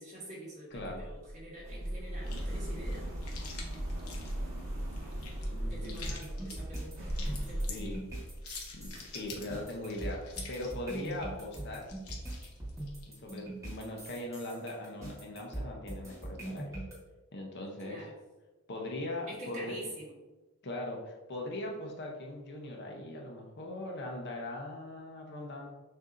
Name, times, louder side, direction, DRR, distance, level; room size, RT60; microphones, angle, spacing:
voice 1, 0.0-3.1 5.7-7.0 7.5-7.8 17.8-18.1 19.3-20.1, right 1 dB, 30° right, -6 dB, 1.5 m, -46 dB
voice 2, 0.7-1.1 4.1-4.2 5.5-6.1 7.3-8.0 8.7-11.9 13.2-16.8 17.3-18.1 18.7-19.8 20.6-25.7, left 1 dB, 50° left, 0 dB, 0.7 m, -40 dB
sound 1, 0.7-10.3 10.6-11.2 11.6-11.7 11.8-13.0, right 1 dB, 65° right, 1.5 m, -39 dB
sound 2, 2.2-14.2, left 4 dB, 80° left, 0.8 m, -48 dB
sound 3, 6.0-16.9, right 1 dB, 15° right, 1.2 m, -42 dB
6.3 x 2.6 x 2.5 m, 1.2 s
head